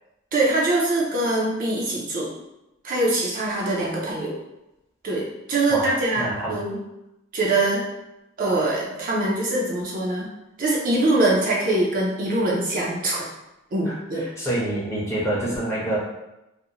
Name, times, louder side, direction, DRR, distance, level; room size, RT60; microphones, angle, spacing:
voice 1, 0.3-2.3 2.8-4.4 5.0-6.8 7.3-7.8 8.4-10.3 10.6-13.3 13.7-14.3, right 2 dB, 40° right, -4 dB, 0.4 m, -23 dB
voice 2, 5.7-6.6 13.8-16.0, right 1 dB, 15° left, -6 dB, 0.6 m, -27 dB
2.4 x 2.0 x 2.8 m, 0.92 s
head